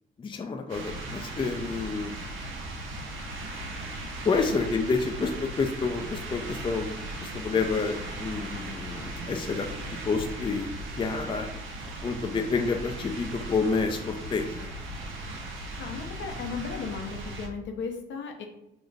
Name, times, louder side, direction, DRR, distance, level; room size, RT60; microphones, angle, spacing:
voice 1, 0.2-2.1 4.2-9.7 10.0-10.7 11.0-11.5 12.0-14.7, left 4 dB, 25° left, 4 dB, 0.4 m, -29 dB
sound 1, 0.7-17.5, right 1 dB, 85° right, 0.8 m, -38 dB
voice 2, 15.8-18.4, left 5 dB, 70° left, 3 dB, 0.8 m, -36 dB
3.9 x 2.5 x 3.4 m, 0.85 s
cardioid pair, 90°, 20 cm